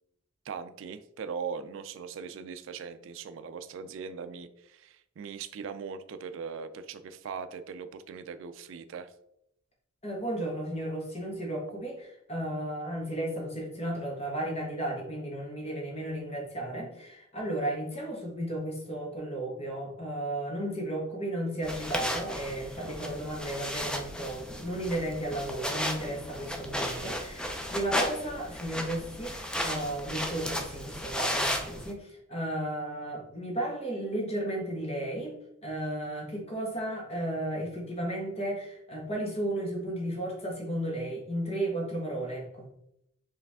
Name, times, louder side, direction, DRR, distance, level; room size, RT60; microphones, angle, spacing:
voice 1, 0.5-9.1 26.8-27.2, right 6 dB, 65° right, 11 dB, 0.3 m, -40 dB
voice 2, 10.0-42.7, right 1 dB, 30° left, -1 dB, 1.3 m, -34 dB
sound 1, 21.6-31.9, left 1 dB, 5° left, 0.4 m, -34 dB
4.7 x 3.2 x 3.5 m, 0.80 s
head